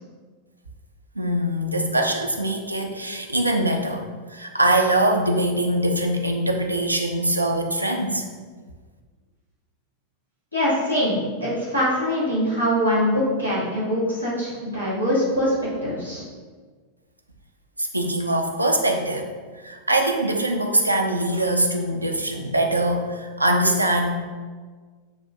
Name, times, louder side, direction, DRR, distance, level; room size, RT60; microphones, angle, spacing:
voice 1, 1.2-8.3 17.8-24.1, right 1 dB, 85° right, 3 dB, 0.4 m, -23 dB
voice 2, 10.5-16.2, equal, 85° left, -8 dB, 1.3 m, -23 dB
6.8 x 2.4 x 2.6 m, 1.5 s
figure-of-eight pair, 90°, 0 cm